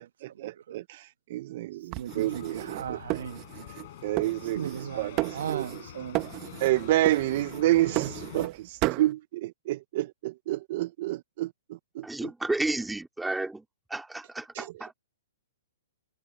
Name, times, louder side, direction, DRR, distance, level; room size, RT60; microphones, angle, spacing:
voice 1, 0.0-3.0 4.0-5.7 6.6-11.5 12.0-12.1 14.5-14.7, right 15 dB, 50° right, 0.9 m, -29 dB
sound 1, 1.9-3.9 4.2-4.9 5.2-5.9 6.1-6.8 7.1-8.5 8.8-9.1, right 21 dB, 30° right, 1.2 m, -33 dB
voice 2, 2.0-3.4 4.5-6.3, right 9 dB, 70° right, 1.4 m, -36 dB
sound 2, 2.1-8.5, left 15 dB, 50° left, 6.2 m, -45 dB
voice 3, 12.0-13.6 13.9-15.0, right 2 dB, 5° right, 2.6 m, -32 dB
hypercardioid pair, 145°, 0 cm